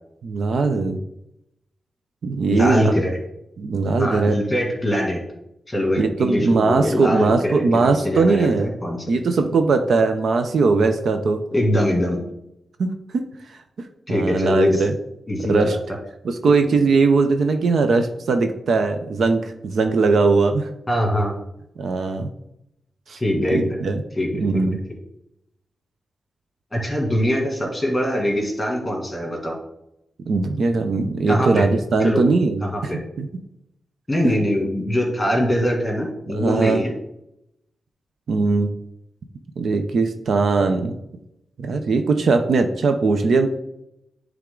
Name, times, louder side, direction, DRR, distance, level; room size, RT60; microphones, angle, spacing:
voice 1, 0.2-1.0 2.2-3.0 3.6-4.3 6.0-8.7 9.1-11.4 12.8-13.2 13.8-14.9 15.5-15.8 16.2-20.7 21.8-22.3 23.1-24.0 24.3-24.8 30.3-32.9 33.2-33.3 36.3-36.8 38.3-38.7 39.6-41.0 41.6-43.5, right 4 dB, 65° right, 6 dB, 0.6 m, -20 dB
voice 2, 2.5-3.2 4.0-5.2 5.7-9.1 11.5-12.2 14.1-14.8 15.3-15.8 20.9-21.3 23.2-23.6 24.2-24.3 26.7-29.6 31.3-31.7 32.0-32.2 32.6-33.0 34.1-36.9, equal, 15° left, -1 dB, 2.1 m, -22 dB
10.0 x 3.5 x 3.8 m, 0.81 s
wide cardioid pair, 135°, 0 cm